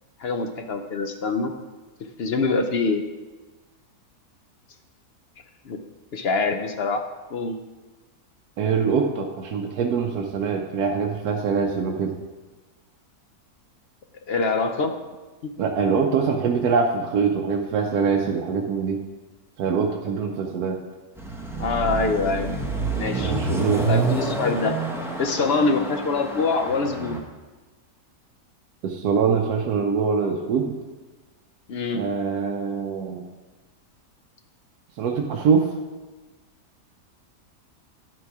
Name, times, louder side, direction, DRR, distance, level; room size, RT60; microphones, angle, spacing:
voice 1, 0.2-1.5 2.2-3.0 5.6-5.8 6.1-7.0 7.3-7.6 14.3-14.9 15.4-15.5 21.6-22.5 22.9-23.3 23.9-24.7 25.2-27.2 31.7-32.1, left 3 dB, 65° left, 6 dB, 0.6 m, -24 dB
voice 2, 8.6-12.2 15.6-19.0 19.6-20.8 23.2-23.9 28.8-30.8 31.9-33.3 35.0-35.7, right 5 dB, 75° right, 2 dB, 1.2 m, -23 dB
Car passing by / Accelerating revving vroom, 21.2-27.2, right 3 dB, ahead, 0.7 m, -28 dB
10.0 x 6.2 x 4.7 m, 1.2 s
omnidirectional pair, 1.7 m